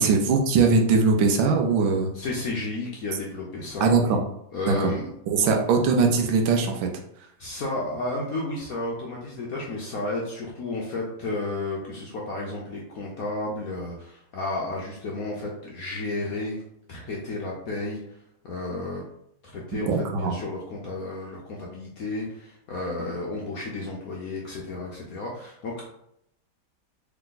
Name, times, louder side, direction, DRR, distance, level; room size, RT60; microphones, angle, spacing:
voice 1, 0.0-2.1 3.8-4.2 4.7-4.8 5.3-6.9 19.7-20.3, right 4 dB, 80° right, 3 dB, 1.4 m, -21 dB
voice 2, 2.1-4.2 4.5-5.1 5.4-5.5 7.4-16.6 16.9-18.2 18.4-19.0 19.4-25.9, left 2 dB, 65° left, -2 dB, 0.9 m, -32 dB
3.5 x 3.4 x 3.8 m, 0.75 s
omnidirectional pair, 2.2 m